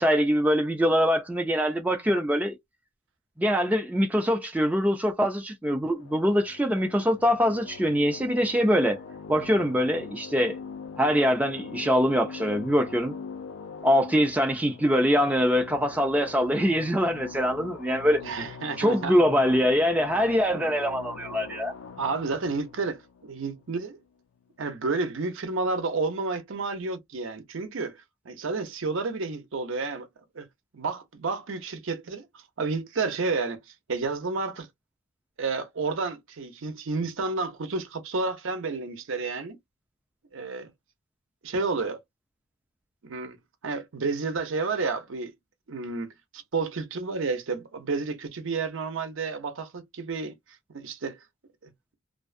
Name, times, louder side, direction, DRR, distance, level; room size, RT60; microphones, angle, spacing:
voice 1, 0.0-2.6 3.4-9.0 9.3-10.6 11.0-13.1 13.8-18.2 18.8-21.7, equal, 5° right, 0.4 m, -23 dB
sound 1, 5.9-24.1, left 5 dB, 70° left, 0.5 m, -43 dB
voice 2, 18.2-19.1 22.0-24.0 24.6-28.0 28.3-30.1 30.3-30.5 30.7-33.6 33.9-34.7 35.4-39.6 40.3-40.7 41.4-42.0 43.0-43.4 43.6-45.3 45.7-50.3 50.7-51.2, right 3 dB, 65° right, 0.6 m, -30 dB
2.5 x 2.3 x 2.4 m
head